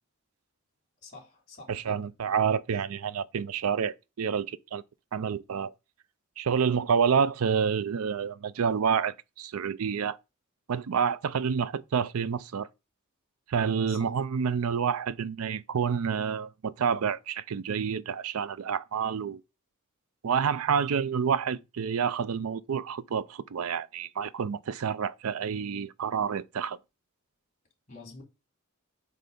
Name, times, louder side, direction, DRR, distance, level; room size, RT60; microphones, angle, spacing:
voice 1, 1.0-2.1 13.9-14.1 27.9-28.2, left 3 dB, 35° left, 2.9 m, -48 dB
voice 2, 1.7-4.8 5.1-5.7 6.4-10.2 10.7-12.7 13.5-19.4 20.2-26.8, right 6 dB, 80° right, 0.4 m, -28 dB
7.6 x 3.2 x 5.3 m
head